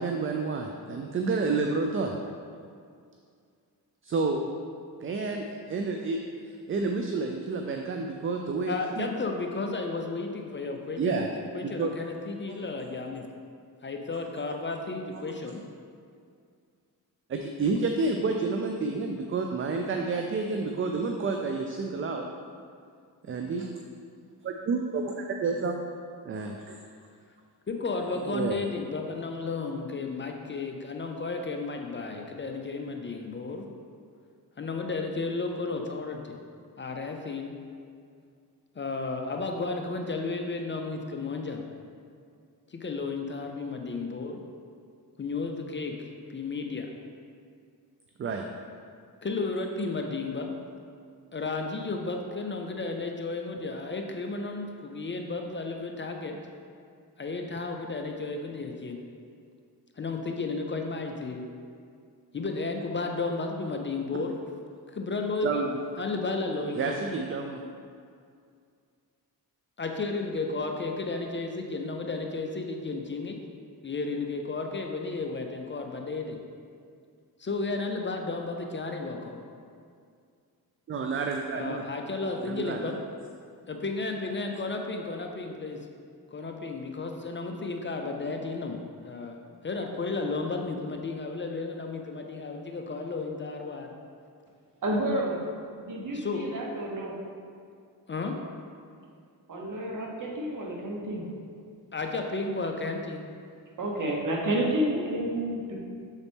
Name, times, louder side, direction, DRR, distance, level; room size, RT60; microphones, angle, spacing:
voice 1, 0.0-2.1 4.0-4.5 5.0-6.2 6.5-9.1 11.0-11.3 11.8-11.9 12.5-12.6 17.3-22.3 23.2-23.7 24.4-25.7 26.2-26.8 28.1-28.6 48.2-48.4 65.4-65.7 66.7-67.6 80.9-81.8 82.4-82.9, right 4 dB, 35° right, 3 dB, 0.4 m, -30 dB
voice 2, 8.7-13.3 13.8-15.6 27.7-33.7 34.6-36.4 36.8-37.5 38.8-41.6 42.7-44.4 45.2-46.0 46.3-46.9 49.2-50.5 51.3-56.4 57.2-59.0 60.0-61.4 62.3-64.4 64.9-65.6 66.0-67.0 69.8-73.4 73.8-76.4 77.4-79.4 81.5-83.0 83.7-85.9 86.3-89.4 89.6-93.9 96.1-96.5 98.1-98.4 101.9-103.2, left 3 dB, 30° left, 3 dB, 0.5 m, -33 dB
voice 3, 94.8-95.4 95.8-97.1 99.5-101.3 103.8-105.8, right 1 dB, 50° right, -1 dB, 1.2 m, -30 dB
7.0 x 4.0 x 3.5 m, 2.3 s
cardioid pair, 75°, 39 cm